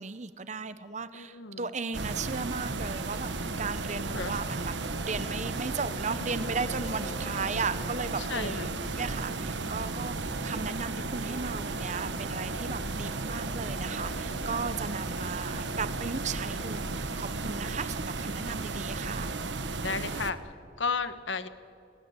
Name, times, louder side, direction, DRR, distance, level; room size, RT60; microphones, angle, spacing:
voice 1, 0.0-3.3 3.6-4.7 5.0-19.3, right 4 dB, 40° right, 13 dB, 0.7 m, -36 dB
voice 2, 1.1-1.7 4.1-4.4 7.0-7.2 8.2-8.7 19.8-21.5, left 4 dB, 75° left, 12 dB, 1.3 m, -34 dB
sound 1, 1.9-20.3, right 3 dB, 65° right, 1.2 m, -34 dB
sound 2, 3.5-17.2, left 1 dB, 60° left, 2.4 m, -50 dB
sound 3, 5.6-8.7, left 2 dB, 15° left, 0.6 m, -48 dB
28.5 x 18.5 x 8.1 m, 2.5 s
head